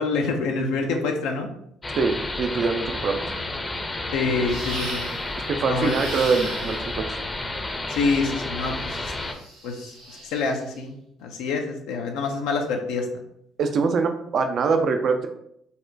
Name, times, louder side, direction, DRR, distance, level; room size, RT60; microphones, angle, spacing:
voice 1, 0.0-1.5 4.1-5.1 5.7-5.9 7.9-9.0 9.6-9.9 10.3-11.0 11.2-13.2, left 4 dB, 75° left, 2 dB, 0.4 m, -26 dB
sound 1, 1.8-9.3, left 2 dB, 25° left, 0.6 m, -31 dB
voice 2, 2.0-3.2 5.4-7.0 13.6-15.3, right 4 dB, 55° right, 6 dB, 0.3 m, -23 dB
sound 2, 4.5-5.3 5.7-7.0 8.7-10.6, right 1 dB, 90° right, 1.4 m, -37 dB
4.0 x 2.1 x 2.6 m, 0.73 s
hypercardioid pair, 55°, 0 cm